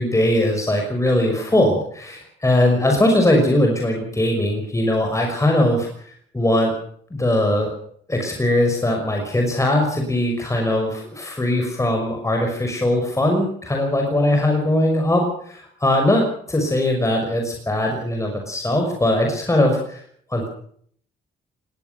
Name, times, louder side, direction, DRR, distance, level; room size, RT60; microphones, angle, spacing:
voice 1, 0.0-5.9 6.3-6.7 7.1-7.7 8.1-20.0 20.3-20.5, left 1 dB, 15° left, 2 dB, 5.9 m, -20 dB
21.0 x 18.0 x 7.0 m, 0.62 s
cardioid pair, 90°, 20 cm